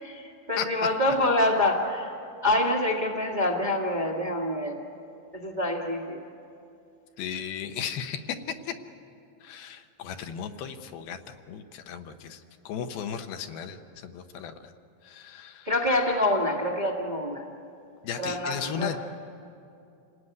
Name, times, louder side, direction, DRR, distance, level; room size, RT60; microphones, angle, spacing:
voice 1, 0.0-2.1 2.4-4.8 5.3-6.2 15.6-17.4 18.2-19.0, left 1 dB, 40° right, -1 dB, 0.6 m, -26 dB
voice 2, 7.2-8.4 8.7-8.8 9.4-12.4 12.7-14.5 15.0-15.7 18.0-19.0, left 8 dB, 80° left, 7 dB, 2.8 m, -35 dB
28.5 x 17.5 x 9.4 m, 2.7 s
omnidirectional pair, 4.4 m